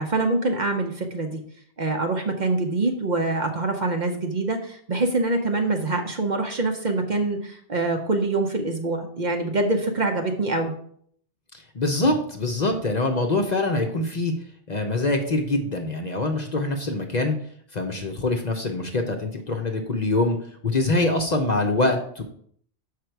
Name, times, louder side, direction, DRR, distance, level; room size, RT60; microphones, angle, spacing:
voice 1, 0.0-1.4 1.8-10.7, right 2 dB, 45° right, 4 dB, 0.8 m, -25 dB
voice 2, 11.7-14.3 14.7-17.3 17.7-20.4 20.6-22.2, left 2 dB, 40° left, 3 dB, 0.8 m, -24 dB
6.6 x 5.1 x 4.6 m, 0.62 s
omnidirectional pair, 1.2 m